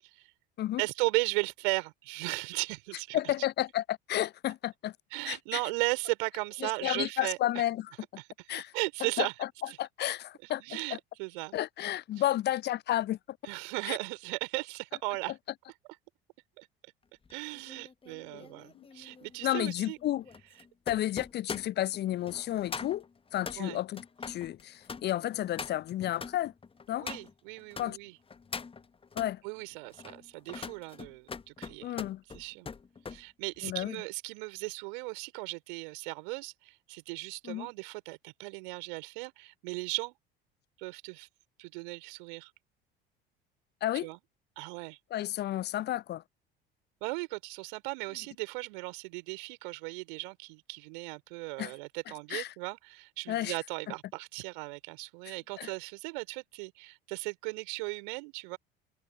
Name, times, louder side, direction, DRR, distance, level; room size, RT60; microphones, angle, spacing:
voice 1, 0.8-3.3 5.1-7.4 8.2-8.3 8.7-9.3 9.7-9.8 10.6-11.5 13.4-15.3 16.6-16.7 17.3-20.0 23.6-23.8 27.0-28.1 29.4-31.9 32.3-32.7 33.1-40.1 40.8-41.3 41.6-42.5 44.0-44.2 44.6-45.0 47.0-58.6, right 29 dB, 60° right, 5.2 m, -36 dB
voice 2, 3.1-4.9 5.3-5.6 6.6-7.9 8.5-8.7 9.2-9.5 9.8-11.0 11.5-13.4 13.9-14.0 18.3-18.4 18.7-18.9 19.4-20.2 20.9-23.0 23.3-26.5 26.9-27.1 27.8-28.0 29.2-29.4 31.8-32.2 33.6-34.0 37.4-37.7 43.8-44.1 45.1-46.2 51.6-51.7 52.3-52.5 53.3-53.5 55.6-55.7, left 13 dB, 35° left, 0.7 m, -32 dB
sound 1, 17.2-27.9 28.3-29.3 29.8-33.2 33.6-33.9, left 5 dB, 20° left, 1.3 m, -43 dB
figure-of-eight pair, 60°, 29 cm